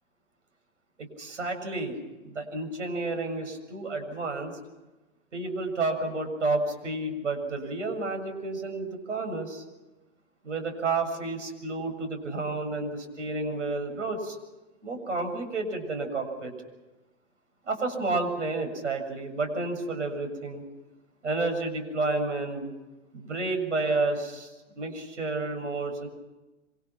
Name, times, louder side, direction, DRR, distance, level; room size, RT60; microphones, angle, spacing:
voice 1, 1.0-2.0 2.2-4.5 5.3-9.6 10.4-14.4 14.8-16.5 17.7-20.6 21.2-22.7 23.1-24.5 24.8-26.1, right 3 dB, 80° right, 5 dB, 7.2 m, -30 dB
26.0 x 26.0 x 6.0 m, 1.1 s
hypercardioid pair, 110°, 36 cm